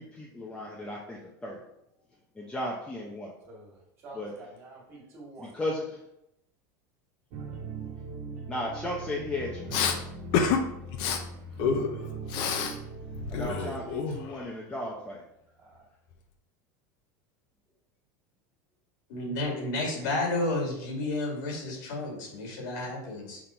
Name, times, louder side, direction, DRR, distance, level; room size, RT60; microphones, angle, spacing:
voice 1, 0.0-1.6 2.4-3.3 4.1-4.3 5.4-6.0 8.5-10.1 13.3-15.2, left 1 dB, 10° left, -4 dB, 0.7 m, -35 dB
voice 2, 3.4-5.5 15.6-15.9, right 2 dB, 25° right, -3 dB, 2.0 m, -48 dB
sound 1, 7.3-13.9, right 3 dB, 50° right, 1.5 m, -40 dB
Respiratory sounds, 9.7-10.0 10.3-10.6 10.9-11.2 11.6-12.8 13.0-14.5, left 6 dB, 50° left, 0.7 m, -28 dB
voice 3, 19.1-23.4, left 2 dB, 75° left, 0 dB, 2.3 m, -31 dB
6.1 x 3.6 x 4.4 m, 0.80 s
supercardioid pair, 160°, 10 cm